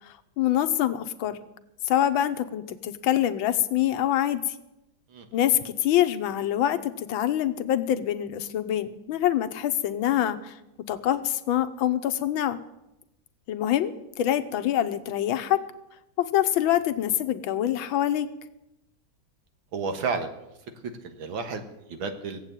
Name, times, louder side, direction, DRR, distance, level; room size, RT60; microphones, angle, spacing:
voice 1, 0.0-1.4 1.9-4.4 5.3-10.5 10.9-12.6 13.5-13.9 14.2-15.6 16.2-18.3, left 11 dB, 85° left, 12 dB, 1.6 m, -25 dB
voice 2, 19.7-20.3 20.8-22.4, right 4 dB, 80° right, 7 dB, 2.2 m, -32 dB
16.5 x 8.1 x 9.0 m, 0.92 s
omnidirectional pair, 2.1 m